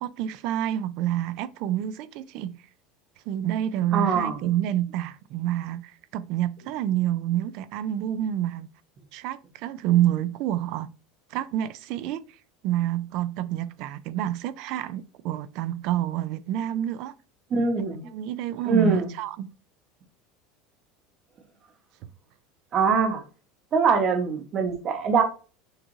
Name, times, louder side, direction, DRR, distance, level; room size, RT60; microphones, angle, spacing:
voice 1, 0.0-2.6 3.3-8.7 9.1-10.9 11.3-12.4 12.6-17.1 18.1-19.5 22.0-22.1, right 12 dB, 55° right, 0.3 m, -28 dB
voice 2, 3.9-4.4 17.5-18.0 18.7-19.1 22.7-23.2 23.7-25.2, right 5 dB, 30° right, 0.8 m, -22 dB
6.2 x 2.5 x 3.0 m
supercardioid pair, 150°, 0 cm